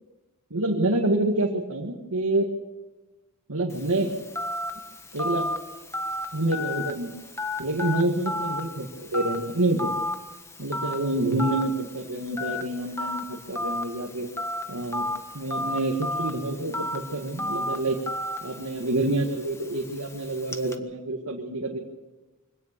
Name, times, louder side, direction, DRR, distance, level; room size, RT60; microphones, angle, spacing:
voice 1, 0.5-2.5 3.5-4.1 5.1-5.5 6.3-7.1 7.6-9.9 10.6-14.3 14.7-15.1 15.3-18.0 18.4-21.8, right 2 dB, 75° right, 0 dB, 2.1 m, -27 dB
Telephone, 3.7-20.8, left 1 dB, 10° left, 1.5 m, -34 dB
24.5 x 18.0 x 6.9 m, 1.2 s
head